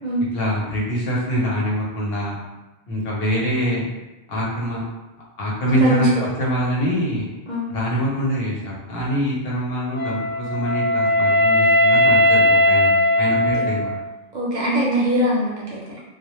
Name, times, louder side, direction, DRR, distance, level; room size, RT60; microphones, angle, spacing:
voice 1, 0.3-2.4 2.9-3.9 4.3-4.8 5.4-7.3 7.7-13.9, equal, 70° left, -5 dB, 0.9 m, -24 dB
voice 2, 5.8-6.2 7.5-7.7 13.5-13.7 14.3-16.0, equal, 55° right, -6 dB, 0.6 m, -22 dB
Wind instrument woodwind instrument, 9.9-14.1, left 1 dB, 20° left, 0.9 m, -18 dB
2.1 x 2.1 x 2.9 m, 1.0 s
omnidirectional pair, 1.1 m